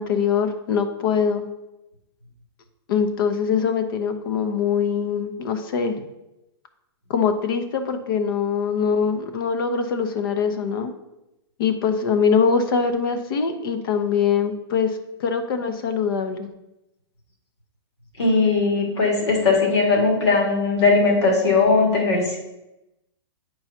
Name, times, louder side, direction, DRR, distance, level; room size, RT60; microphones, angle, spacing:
voice 1, 0.0-1.5 2.9-5.9 7.1-10.9 11.6-16.5, left 6 dB, 55° left, 8 dB, 0.9 m, -23 dB
voice 2, 18.2-22.4, left 4 dB, 85° left, -1 dB, 2.3 m, -19 dB
8.6 x 4.7 x 2.8 m, 0.92 s
hypercardioid pair, 145°, 14 cm